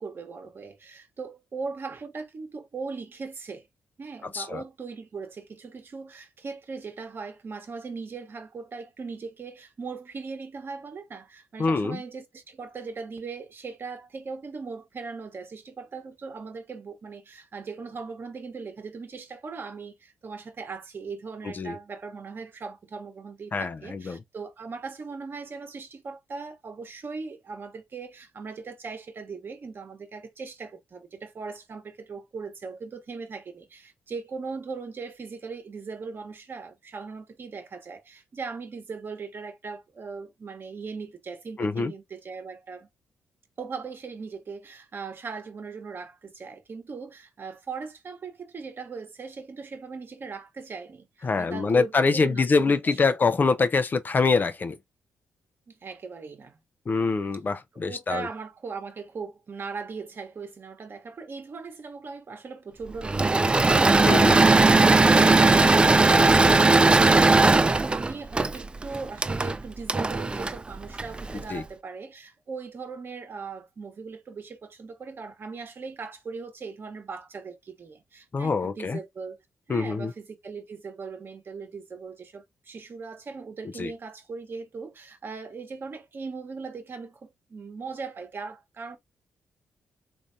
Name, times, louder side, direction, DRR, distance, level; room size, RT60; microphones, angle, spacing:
voice 1, 0.0-3.7 4.0-42.9 43.6-53.0 55.7-56.6 57.8-79.4 79.7-89.0, right 4 dB, 50° right, 1.0 m, -39 dB
voice 2, 11.6-12.0 21.4-21.8 23.5-24.2 41.6-41.9 51.2-54.8 56.9-58.3 64.0-64.4 71.5-71.6 78.3-79.0 79.7-80.1 83.8-83.9, left 4 dB, 40° left, 0.5 m, -24 dB
Engine / Mechanisms, 63.0-71.4, right 3 dB, 20° right, 0.3 m, -19 dB
3.3 x 2.6 x 2.6 m
supercardioid pair, 60°, 5 cm